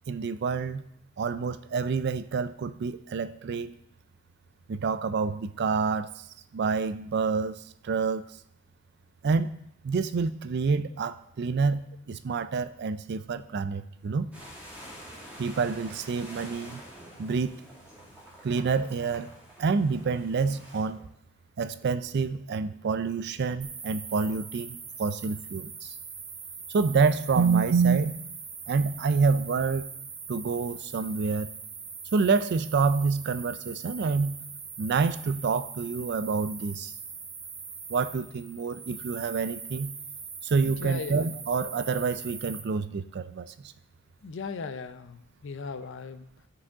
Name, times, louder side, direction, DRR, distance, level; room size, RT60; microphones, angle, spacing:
voice 1, 0.1-0.8 1.2-3.7 4.7-6.1 6.5-8.2 9.2-9.5 9.8-14.3 15.4-16.8 17.2-17.5 18.4-19.3 19.6-21.0 21.6-25.9 26.7-28.2 28.7-29.9 30.3-31.5 32.1-34.5 34.8-36.9 37.9-39.9 40.4-43.7, right 5 dB, 50° right, 13 dB, 0.4 m, -27 dB
sound 1, 14.3-20.8, equal, 5° right, 1.9 m, -47 dB
Speech synthesizer, 14.7-15.0 15.3-15.4 15.7-16.1 16.4-16.5 17.0-17.1 17.4-17.5 17.9-18.1 18.9-19.1 19.8-20.4 20.8-21.4 21.7-21.9 22.5-22.7 23.3-23.8 24.1-24.7, equal, 15° left, 3.5 m, -58 dB
sound 2, 23.6-42.6, right 5 dB, 35° right, 1.1 m, -42 dB
voice 2, 40.6-41.4 44.2-46.5, left 4 dB, 60° left, 11 dB, 0.5 m, -38 dB
12.5 x 4.8 x 3.5 m, 0.78 s
head